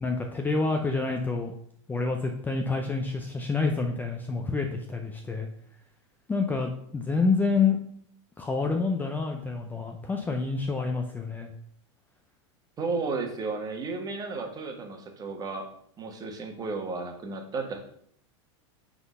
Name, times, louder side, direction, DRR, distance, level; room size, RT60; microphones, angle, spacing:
voice 1, 0.0-1.5 1.9-5.5 6.3-7.8 8.4-11.5, left 4 dB, 10° left, 3 dB, 0.5 m, -28 dB
voice 2, 12.8-15.7 16.0-17.8, right 3 dB, 25° right, 4 dB, 1.3 m, -33 dB
5.9 x 3.9 x 5.4 m, 0.66 s
supercardioid pair, 130°, 16 cm